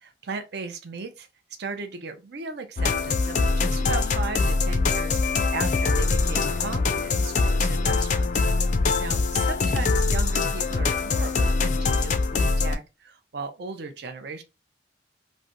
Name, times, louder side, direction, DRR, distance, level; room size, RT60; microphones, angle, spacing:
voice 1, 0.0-1.3 1.6-8.3 9.0-14.4, right 4 dB, 65° right, 0.5 m, -36 dB
sound 1, 2.8-12.8, left 3 dB, 45° left, 0.4 m, -23 dB
3.1 x 2.6 x 2.5 m
head